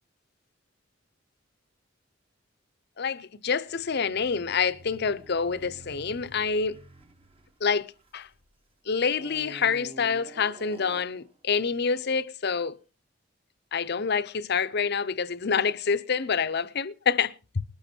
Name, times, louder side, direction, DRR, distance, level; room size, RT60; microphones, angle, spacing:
voice 1, 3.0-6.8 7.6-7.9 8.1-8.3 8.9-12.8 13.7-17.6, left 5 dB, 55° left, 0.7 m, -27 dB
sound 1, 3.7-8.5 9.1-11.3, right 1 dB, 30° right, 1.0 m, -49 dB
20.5 x 8.1 x 4.4 m
head